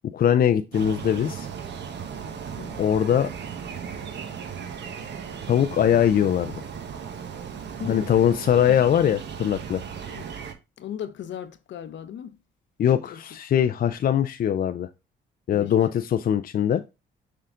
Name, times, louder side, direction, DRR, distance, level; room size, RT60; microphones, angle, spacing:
voice 1, 0.1-1.5 2.8-3.3 5.5-6.5 7.9-9.8 12.8-14.9 15.5-16.8, left 9 dB, 50° left, 0.5 m, -21 dB
sound 1, 0.7-10.5, right 7 dB, 60° right, 1.2 m, -36 dB
voice 2, 7.8-8.1 10.1-10.2 10.8-12.4 12.9-13.2 15.5-15.7, left 9 dB, 65° left, 0.9 m, -36 dB
6.6 x 3.8 x 3.8 m
cardioid pair, 90°, 20 cm